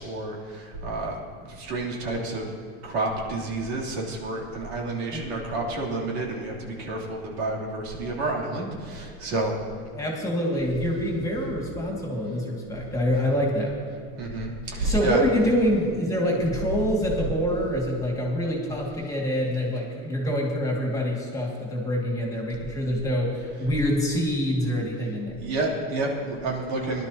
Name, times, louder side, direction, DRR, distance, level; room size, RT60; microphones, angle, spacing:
voice 1, 0.0-2.5 2.8-9.5 13.1-13.3 14.2-15.2 25.4-27.1, right 2 dB, 80° right, -3 dB, 3.2 m, -30 dB
voice 2, 9.9-13.7 14.8-25.4, equal, 10° left, -2 dB, 2.2 m, -26 dB
19.5 x 11.5 x 2.9 m, 2.1 s
supercardioid pair, 140°, 33 cm